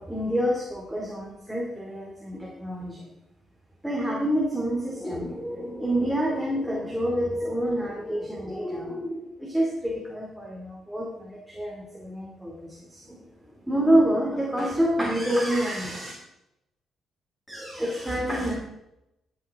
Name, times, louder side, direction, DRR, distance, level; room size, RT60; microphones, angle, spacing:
voice 1, 0.0-3.1 3.8-13.2 13.7-16.1 17.5-18.5, equal, 5° right, -2 dB, 2.6 m, -27 dB
14.0 x 8.7 x 3.7 m, 0.89 s
cardioid pair, 90°, 0 cm